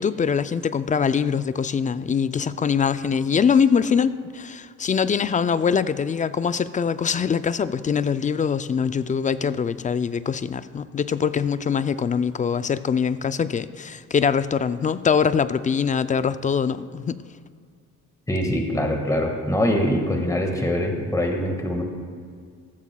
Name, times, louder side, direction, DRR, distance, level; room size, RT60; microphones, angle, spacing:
voice 1, 0.0-17.2, left 6 dB, 25° left, 14 dB, 0.3 m, -23 dB
voice 2, 18.3-21.8, left 1 dB, 10° left, 2 dB, 1.6 m, -23 dB
14.5 x 14.0 x 2.3 m, 2.1 s
cardioid pair, 90°, 30 cm